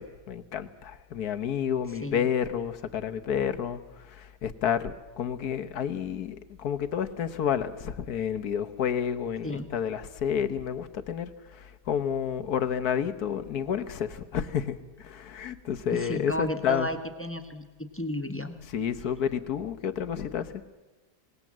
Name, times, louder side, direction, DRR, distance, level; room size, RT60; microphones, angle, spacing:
voice 1, 0.0-16.9 18.7-20.5, left 8 dB, 65° left, 10 dB, 1.6 m, -30 dB
voice 2, 1.9-2.3 9.4-9.7 15.9-18.6, equal, 10° left, 8 dB, 1.1 m, -33 dB
26.5 x 19.0 x 7.4 m, 1.1 s
omnidirectional pair, 1.8 m